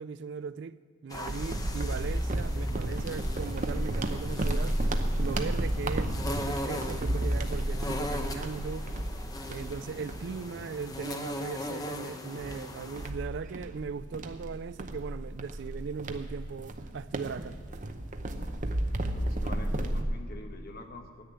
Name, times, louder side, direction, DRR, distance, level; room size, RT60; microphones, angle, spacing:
voice 1, 0.0-4.8 5.2-8.9 9.5-17.6, right 5 dB, 55° right, 0.3 m, -38 dB
sound 1, 1.1-13.1, left 1 dB, 15° left, 0.8 m, -40 dB
sound 2, 1.3-11.1 11.6-11.8 12.4-20.0, right 1 dB, 35° right, 0.8 m, -32 dB
voice 2, 19.0-21.2, left 2 dB, 45° left, 1.1 m, -46 dB
10.0 x 9.4 x 9.4 m
head